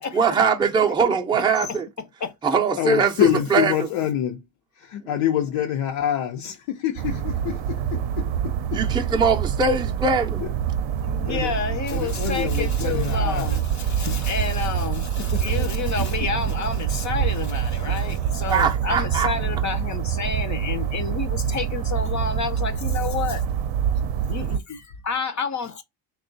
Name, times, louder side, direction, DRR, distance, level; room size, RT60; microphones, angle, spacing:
voice 1, 0.1-1.9 2.4-3.7 8.7-10.4 18.5-19.3, right 5 dB, 10° right, 0.4 m, -21 dB
voice 2, 2.8-4.4 4.8-8.8 10.4-10.5 11.3-11.5 11.9-13.6 15.3-15.7, left 10 dB, 80° left, 0.8 m, -26 dB
sound 1, 7.0-24.6, right 9 dB, 65° right, 0.6 m, -26 dB
voice 3, 11.0-23.4 24.3-25.8, left 6 dB, 35° left, 0.6 m, -30 dB
3.5 x 2.3 x 3.8 m
cardioid pair, 130°, 49 cm